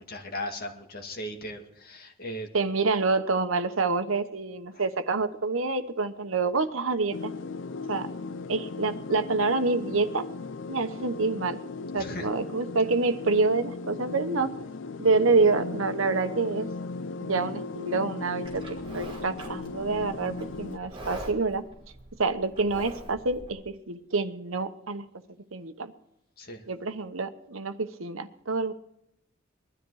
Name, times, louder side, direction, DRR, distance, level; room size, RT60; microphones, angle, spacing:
voice 1, 0.0-2.5 4.7-4.8 12.0-12.3 26.4-26.6, left 1 dB, 45° left, 3 dB, 2.2 m, -37 dB
voice 2, 2.5-7.3 7.9-8.1 8.5-10.3 10.7-11.6 11.9-14.5 15.0-16.7 17.2-21.6 22.2-25.1 25.5-25.9 26.7-28.7, right 3 dB, 80° right, 10 dB, 1.1 m, -27 dB
sound 1, 7.1-20.8, left 3 dB, 60° left, 0.5 m, -37 dB
Livestock farm animals working animals, 18.4-23.5, right 1 dB, 25° right, 3.4 m, -43 dB
21.0 x 13.0 x 4.9 m, 0.83 s
head